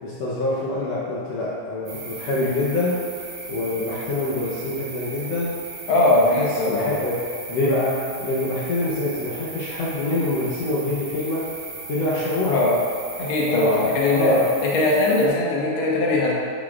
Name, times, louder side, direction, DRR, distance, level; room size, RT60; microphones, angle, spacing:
voice 1, 0.0-3.0 3.5-5.5 6.2-7.2 7.5-11.5 11.9-12.6 13.5-13.7 14.1-14.5, left 2 dB, 80° left, -7 dB, 1.4 m, -25 dB
sound 1, 1.9-15.3, right 4 dB, 65° right, 1.4 m, -37 dB
voice 2, 5.9-6.9 12.4-12.7 13.2-14.3 14.7-16.3, left 2 dB, 60° left, -5 dB, 1.4 m, -20 dB
11.0 x 6.1 x 2.4 m, 2.5 s
omnidirectional pair, 4.1 m